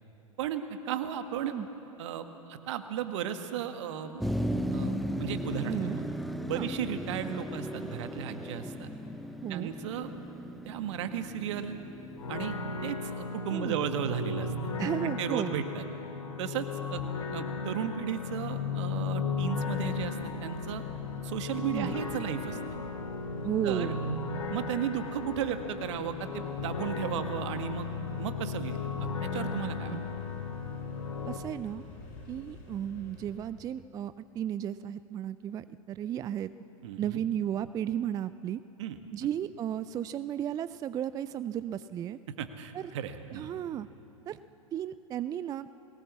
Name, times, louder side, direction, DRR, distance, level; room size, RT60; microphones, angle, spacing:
voice 1, 0.4-1.5 2.0-4.2 4.7-5.9 6.4-8.9 9.5-10.1 10.6-11.8 12.3-12.5 12.8-14.5 15.0-15.8 16.4-17.0 17.3-20.8 21.2-22.6 23.6-23.9 24.5-27.9 28.2-28.8 29.3-29.9 36.8-37.2 38.8-39.0 42.4-43.5, right 9 dB, 55° right, 8 dB, 1.6 m, -35 dB
Motor vehicle (road), 4.2-13.2, equal, ahead, 0.9 m, -36 dB
voice 2, 5.7-6.0 6.5-6.7 9.4-9.7 13.5-13.8 14.8-15.6 21.7-22.0 23.4-24.0 29.9-30.0 31.3-31.8 32.3-36.5 37.0-38.6 39.1-42.2 42.7-42.9 43.3-43.9 44.3-44.4 44.7-45.7, right 10 dB, 20° right, 15 dB, 0.4 m, -34 dB
sound 1, 12.2-31.4, left 4 dB, 75° left, 2.3 m, -35 dB
sound 2, 19.6-33.3, left 3 dB, 45° left, 5.9 m, -50 dB
21.5 x 18.5 x 7.5 m, 2.9 s
figure-of-eight pair, 100°, 18 cm